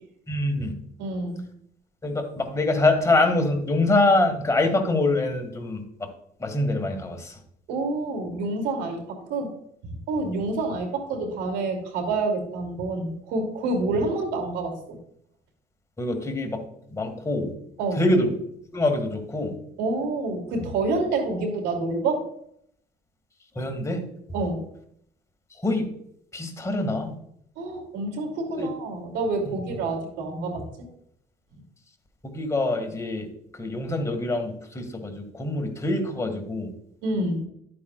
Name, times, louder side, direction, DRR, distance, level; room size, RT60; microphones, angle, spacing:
voice 1, 0.3-0.7 2.0-6.1 6.4-7.4 10.3-10.4 16.0-16.6 16.9-17.5 17.9-18.3 18.7-19.5 23.6-24.0 25.6-25.9 26.3-27.1 28.5-28.7 32.3-36.7, left 2 dB, 20° left, 4 dB, 1.9 m, -25 dB
voice 2, 1.0-1.4 7.7-9.5 10.1-15.0 17.8-18.0 19.8-22.2 24.3-24.6 27.6-30.6 37.0-37.5, right 3 dB, 90° right, 4 dB, 2.6 m, -28 dB
11.5 x 8.5 x 2.4 m, 0.70 s
cardioid pair, 110°, 17 cm